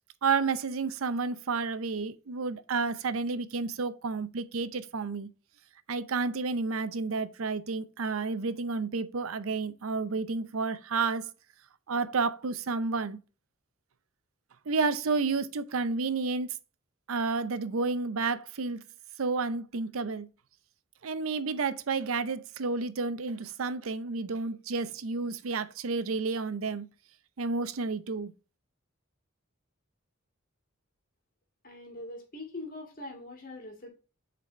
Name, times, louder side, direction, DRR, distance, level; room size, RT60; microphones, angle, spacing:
voice 1, 0.2-5.3 5.9-11.3 11.9-13.2 14.7-16.5 17.1-18.8 19.2-20.3 21.0-26.9 27.4-28.3, right 4 dB, 80° right, 0.6 m, -31 dB
voice 2, 31.6-33.9, left 2 dB, 45° left, 2.1 m, -42 dB
7.3 x 4.1 x 3.1 m
head